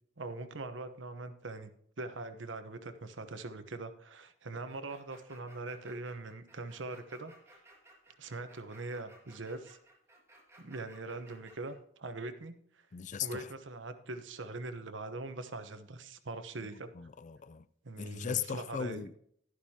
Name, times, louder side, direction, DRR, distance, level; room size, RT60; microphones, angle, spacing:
voice 1, 0.2-1.7 2.0-7.3 8.2-9.8 10.6-12.5 13.2-17.1 17.8-19.1, right 2 dB, 75° right, 1.1 m, -42 dB
sound 1, 4.7-11.8, right 1 dB, 15° right, 2.1 m, -59 dB
voice 2, 12.9-13.5 16.6-17.7 18.0-19.2, left 7 dB, 40° left, 0.4 m, -38 dB
12.0 x 11.0 x 2.9 m
head